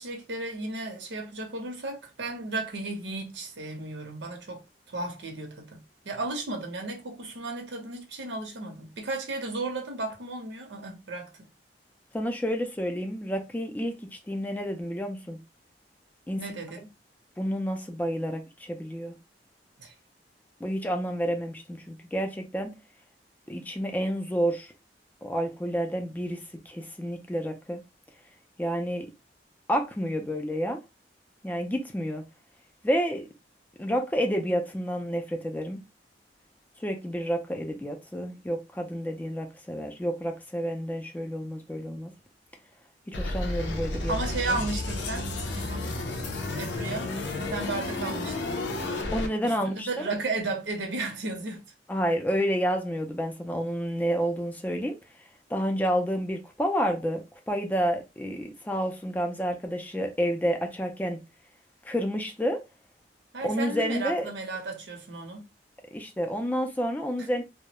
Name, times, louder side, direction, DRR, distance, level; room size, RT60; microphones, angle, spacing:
voice 1, 0.0-11.3 16.4-16.9 19.8-19.9 44.1-46.0 46.3-47.1 47.4-48.6 49.4-51.6 63.3-65.4, right 2 dB, 85° right, 0.7 m, -34 dB
voice 2, 12.1-15.4 16.3-16.4 17.4-19.1 20.6-22.7 23.5-24.7 25.2-27.8 28.6-29.1 29.7-30.8 31.4-32.2 32.8-33.3 33.8-35.8 36.8-42.1 43.1-44.2 44.5-44.6 49.1-50.1 51.9-55.0 55.5-61.2 61.8-62.6 63.4-64.3 65.9-67.4, equal, 10° left, 0.3 m, -29 dB
sound 1, 43.1-49.3, left 2 dB, 75° left, 0.5 m, -32 dB
2.2 x 2.0 x 2.8 m
head